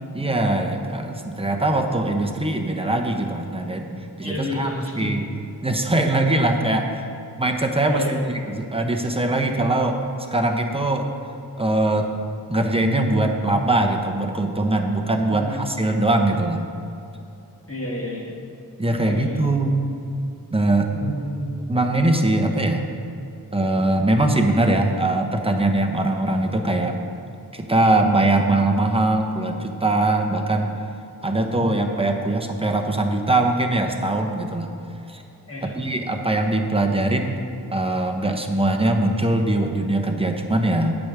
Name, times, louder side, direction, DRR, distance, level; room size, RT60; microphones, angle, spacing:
voice 1, 0.1-4.7 4.9-5.2 5.6-6.9 7.4-8.2 8.5-10.0 10.3-11.1 11.6-12.1 12.5-16.6 18.8-19.8 20.5-21.2 21.7-22.8 23.5-27.0 27.5-30.7 31.2-34.7 35.1-35.2 35.6-37.4 37.7-41.0, right 2 dB, 15° right, 3 dB, 1.0 m, -21 dB
voice 2, 4.2-5.2 7.8-8.2 15.3-15.8 17.7-18.4 18.9-19.4 20.9-21.6 31.5-31.8 35.5-35.7, left 1 dB, 35° left, -3 dB, 2.0 m, -30 dB
9.3 x 5.2 x 7.4 m, 2.7 s
wide cardioid pair, 50°, 40 cm